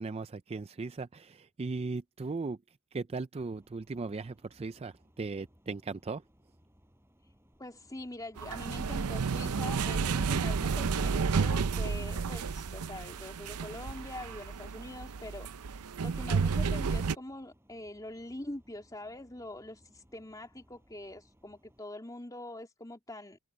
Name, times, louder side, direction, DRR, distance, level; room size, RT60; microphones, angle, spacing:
voice 1, 0.0-2.6 2.9-6.2, right 3 dB, 25° right, 0.4 m, -37 dB
sound 1, 3.4-21.8, equal, 10° right, 6.1 m, -65 dB
voice 2, 7.6-15.5 16.0-23.4, left 1 dB, 15° left, 3.0 m, -44 dB
sound 2, 8.4-17.1, right 5 dB, 80° right, 0.6 m, -31 dB
head